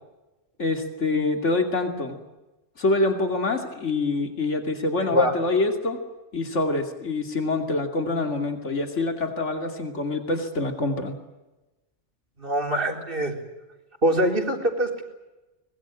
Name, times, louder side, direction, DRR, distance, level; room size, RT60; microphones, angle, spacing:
voice 1, 0.6-2.2 2.8-6.0 6.3-11.2, left 2 dB, 85° left, 5 dB, 3.0 m, -25 dB
voice 2, 5.0-5.4 12.4-13.3 14.0-15.0, equal, 50° right, 3 dB, 4.1 m, -23 dB
24.5 x 21.0 x 8.8 m, 1.1 s
omnidirectional pair, 1.2 m